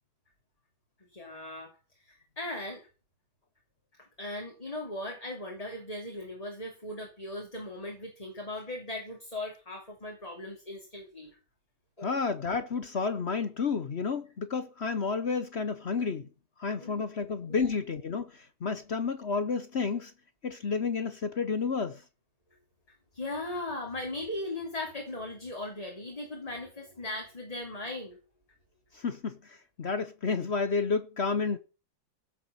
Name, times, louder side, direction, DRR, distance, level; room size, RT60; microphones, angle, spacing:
voice 1, 1.1-1.7 2.0-2.8 4.2-11.3 12.0-12.1 16.7-17.0 17.5-17.7 23.1-28.2, left 1 dB, 20° left, 3.3 m, -38 dB
voice 2, 12.0-16.3 16.6-20.1 20.4-22.0 28.9-31.6, left 5 dB, 50° left, 0.8 m, -31 dB
16.0 x 6.9 x 7.1 m
omnidirectional pair, 2.1 m